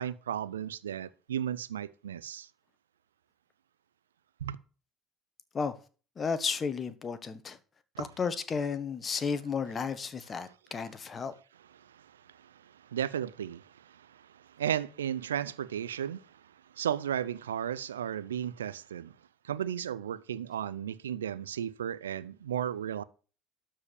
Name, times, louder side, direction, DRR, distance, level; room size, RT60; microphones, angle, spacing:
voice 1, 0.0-2.5 4.4-4.6 8.0-8.1 11.8-16.4 16.7-19.1 19.4-23.0, right 9 dB, 85° right, 0.5 m, -35 dB
voice 2, 6.2-7.6 8.0-11.3, left 5 dB, 35° left, 1.5 m, -33 dB
12.5 x 4.9 x 7.0 m
hypercardioid pair, 60°, 0 cm